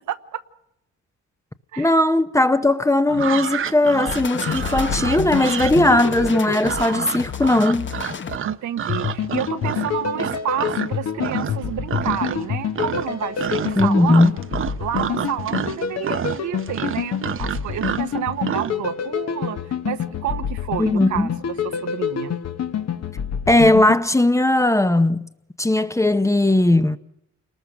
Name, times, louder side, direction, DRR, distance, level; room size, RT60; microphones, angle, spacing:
voice 1, 0.1-0.4 1.7-2.0 8.4-14.3 14.8-19.6 19.8-21.3 21.6-22.3, right 10 dB, 70° right, 1.2 m, -29 dB
voice 2, 1.8-7.9 13.8-14.3 20.8-21.3 23.5-25.3 25.6-27.0, left 1 dB, 10° left, 0.8 m, -18 dB
sound 1, 3.1-10.9 11.2-11.6 11.9-12.5 12.7-18.7, right 8 dB, 45° right, 0.8 m, -29 dB
sound 2, 4.1-8.4, left 7 dB, 40° left, 1.1 m, -31 dB
sound 3, 4.4-7.4 8.9-24.0, left 8 dB, 55° left, 1.4 m, -27 dB
29.0 x 19.5 x 6.2 m
cardioid pair, 90°, 30 cm